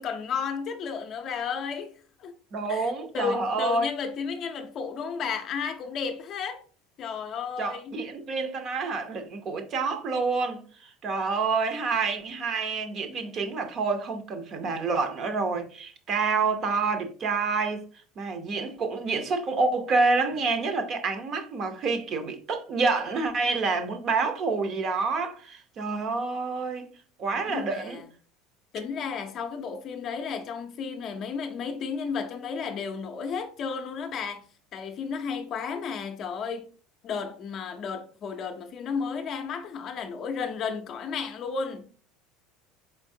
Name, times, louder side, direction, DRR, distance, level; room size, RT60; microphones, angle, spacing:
voice 1, 0.0-1.9 2.2-2.3 2.7-6.6 7.0-8.0 27.5-28.0 28.7-34.4 34.7-36.7 37.0-41.9, left 6 dB, 35° left, 0.5 m, -33 dB
voice 2, 2.5-3.9 7.6-17.8 18.2-26.9 27.2-28.0, right 4 dB, 35° right, 0.7 m, -28 dB
4.4 x 4.1 x 2.7 m
cardioid pair, 160°, 0 cm